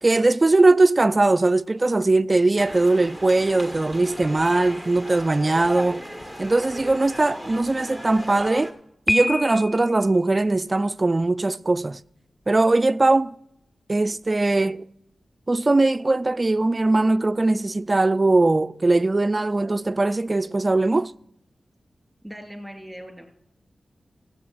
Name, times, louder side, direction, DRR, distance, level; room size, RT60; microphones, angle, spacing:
voice 1, 0.0-6.0 6.4-8.7 9.1-12.0 12.5-13.4 13.9-14.9 15.5-21.1, right 2 dB, 35° right, 0.3 m, -20 dB
sound 1, 2.6-8.7, equal, 15° left, 1.4 m, -36 dB
Piano, 9.1-10.0, left 2 dB, 35° left, 0.4 m, -26 dB
voice 2, 22.2-23.3, equal, 5° right, 2.9 m, -39 dB
16.5 x 7.7 x 4.9 m
cardioid pair, 70°, 0 cm